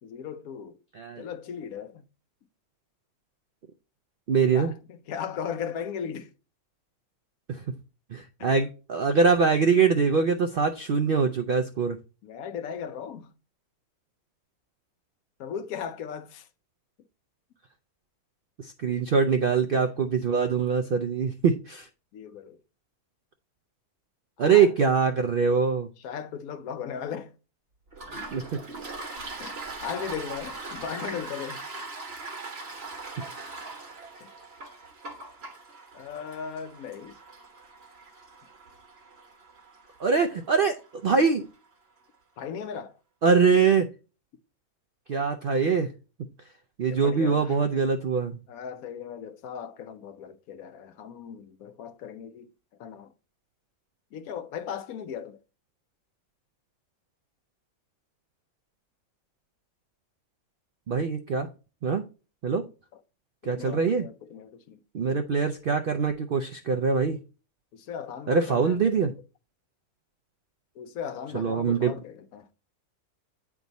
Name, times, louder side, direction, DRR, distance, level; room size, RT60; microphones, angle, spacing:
voice 1, 0.0-0.8 1.2-2.0 4.5-6.3 8.4-8.5 12.2-13.3 15.4-16.5 19.7-19.9 22.1-22.6 24.4-24.7 26.0-27.3 29.4-31.6 34.2-34.3 35.9-37.2 42.4-42.9 46.8-47.6 48.5-52.5 52.8-53.1 54.1-55.4 62.9-63.0 63.4-64.8 67.7-68.8 70.8-72.5, left 7 dB, 75° left, 1.1 m, -37 dB
voice 2, 1.0-1.3 4.3-4.7 7.5-7.6 8.1-12.0 18.6-21.9 24.4-25.9 28.3-28.5 40.0-41.5 43.2-43.9 45.1-45.9 46.8-48.4 60.9-61.5 61.8-62.0 62.4-62.7 63.4-64.1 64.9-67.2 68.3-69.1 71.3-71.9, right 5 dB, 70° right, 0.5 m, -23 dB
Toilet flush, 27.9-41.3, right 3 dB, 45° right, 1.6 m, -41 dB
9.2 x 3.6 x 4.0 m
omnidirectional pair, 1.6 m